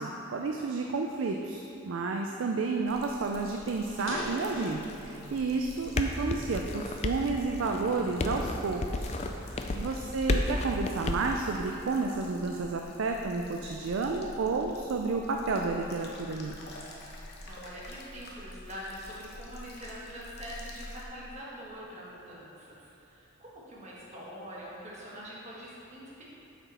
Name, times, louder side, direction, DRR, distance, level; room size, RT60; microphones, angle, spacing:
voice 1, 0.0-9.1 9.4-16.6, right 3 dB, 70° right, 2 dB, 0.4 m, -31 dB
sound 1, 2.9-21.0, left 1 dB, 50° left, 0.9 m, -48 dB
sound 2, 4.0-5.5 6.0-7.3 7.9-8.1 8.7-10.8, left 1 dB, 70° left, 1.8 m, -42 dB
sound 3, 5.7-11.3, left 2 dB, 30° left, 0.4 m, -32 dB
voice 2, 17.2-26.2, equal, 35° right, -6 dB, 1.5 m, -44 dB
7.0 x 6.0 x 4.2 m, 2.8 s
head